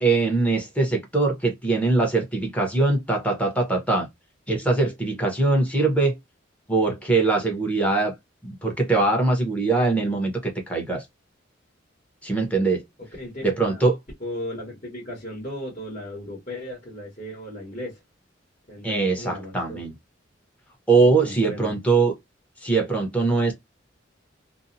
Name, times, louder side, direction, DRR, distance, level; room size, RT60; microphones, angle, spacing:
voice 1, 0.0-4.1 4.5-6.2 6.7-8.1 8.4-10.3 10.7-11.0 12.2-12.8 13.4-14.0 18.8-19.9 20.9-22.1 22.6-23.5, right 3 dB, 5° left, 0.8 m, -22 dB
voice 2, 13.0-13.9 14.2-18.0 18.7-19.8 21.0-21.8, left 1 dB, 35° left, 1.2 m, -36 dB
2.6 x 2.0 x 2.6 m
head